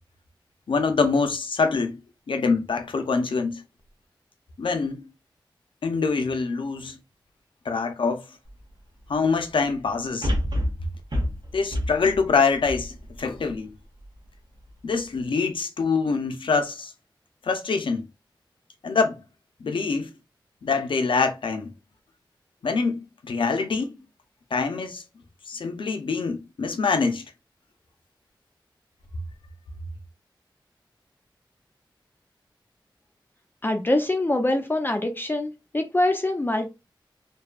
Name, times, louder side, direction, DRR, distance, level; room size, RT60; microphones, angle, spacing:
voice 1, 0.7-2.0 2.3-3.6 4.6-5.0 5.8-7.0 7.6-8.2 9.1-10.3 11.5-13.7 14.8-16.9 17.4-18.0 18.8-19.2 19.6-20.1 20.6-21.7 22.6-23.9 24.5-25.0 25.5-27.3, left 4 dB, 85° left, 0.5 m, -25 dB
sound 1, 8.5-8.6 10.2-13.5 14.0-14.1, equal, 60° right, 0.9 m, -28 dB
voice 2, 33.6-36.7, left 1 dB, 25° left, 0.5 m, -24 dB
2.6 x 2.2 x 2.3 m
cardioid pair, 50°, 8 cm